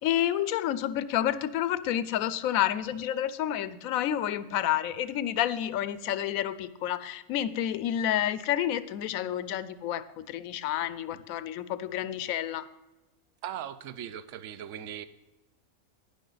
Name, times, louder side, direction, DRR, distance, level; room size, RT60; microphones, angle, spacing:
voice 1, 0.0-12.7, left 11 dB, 85° left, 15 dB, 1.0 m, -29 dB
voice 2, 13.4-15.1, right 10 dB, 70° right, 13 dB, 1.0 m, -39 dB
11.5 x 10.0 x 3.9 m, 1.0 s
omnidirectional pair, 1.4 m